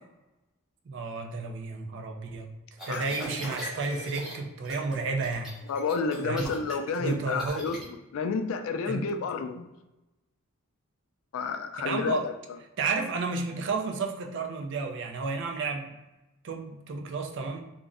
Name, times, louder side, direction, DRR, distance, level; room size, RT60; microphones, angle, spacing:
voice 1, 0.9-2.5 2.9-5.5 6.2-6.5 7.0-7.7 8.9-9.1 11.8-12.2 12.8-16.0 16.4-17.6, right 4 dB, 60° right, 4 dB, 0.4 m, -32 dB
sound 1, 2.8-4.3 4.6-5.0 5.2-7.8, equal, 5° right, 0.7 m, -39 dB
voice 2, 5.7-7.8 8.1-9.7 11.3-12.3, left 5 dB, 70° left, 7 dB, 0.3 m, -30 dB
2.5 x 2.0 x 3.5 m, 1.0 s
head